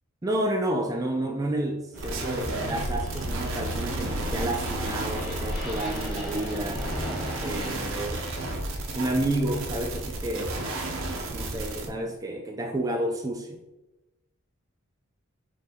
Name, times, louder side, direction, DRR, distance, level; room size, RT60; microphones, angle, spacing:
voice 1, 0.2-7.1 7.4-8.3 9.0-10.6 11.3-13.6, right 1 dB, 15° right, 2 dB, 0.3 m, -30 dB
sound 1, 1.9-7.8, equal, ahead, 1.3 m, -35 dB
sound 2, 2.0-11.9, right 2 dB, 70° right, 0.6 m, -33 dB
5.4 x 2.7 x 2.7 m, 1.0 s
head